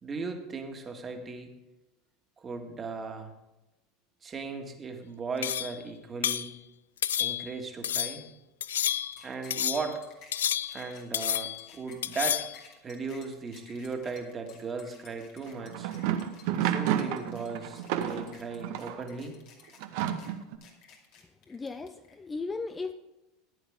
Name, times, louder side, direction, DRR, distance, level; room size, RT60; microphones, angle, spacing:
voice 1, 0.0-1.5 2.4-3.3 4.2-6.5 7.2-8.3 9.2-10.0 10.7-12.4 12.8-15.9 16.6-19.3, right 4 dB, 25° right, 4 dB, 1.9 m, -37 dB
sound 1, 5.4-5.8 6.2-6.5 7.0-7.5 7.8-8.2 8.6-9.2 9.5-9.9 10.3-10.9 11.1-11.7 12.0-12.6, left 10 dB, 75° left, 0.3 m, -30 dB
sound 2, 8.7-22.1, left 5 dB, 55° left, 2.5 m, -54 dB
sound 3, 15.5-19.0 19.8-20.6, right 10 dB, 60° right, 1.0 m, -31 dB
voice 2, 21.5-22.9, left 3 dB, 20° left, 9 dB, 0.6 m, -36 dB
14.5 x 9.9 x 3.7 m, 0.99 s
hypercardioid pair, 80°, 0 cm